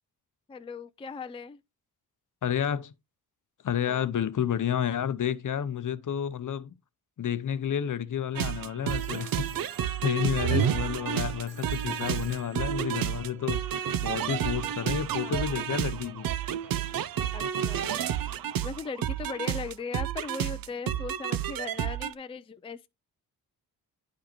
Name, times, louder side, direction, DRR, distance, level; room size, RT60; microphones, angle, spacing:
voice 1, 0.5-1.6 3.8-4.1 15.1-15.5 16.4-16.9 17.3-22.9, left 4 dB, 15° left, 0.4 m, -39 dB
voice 2, 2.4-2.9 3.6-6.7 7.2-9.6 10.0-16.3, left 9 dB, 50° left, 0.7 m, -30 dB
sound 1, 8.3-22.1, right 10 dB, 60° right, 0.6 m, -30 dB
sound 2, 8.9-13.9, right 8 dB, 80° right, 1.2 m, -51 dB
10.5 x 4.9 x 3.0 m
cardioid pair, 75°, 39 cm